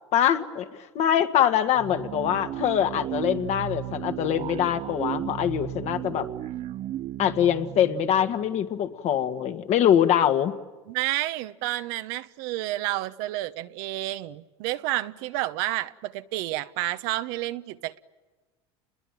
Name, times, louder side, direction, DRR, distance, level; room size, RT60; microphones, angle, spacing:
voice 1, 0.1-6.3 7.2-10.5, left 10 dB, 55° left, 1.9 m, -23 dB
sound 1, 1.8-8.9, right 13 dB, 50° right, 0.9 m, -35 dB
voice 2, 10.9-18.0, right 16 dB, 70° right, 1.1 m, -30 dB
29.5 x 22.0 x 9.2 m
supercardioid pair, 95°, 14 cm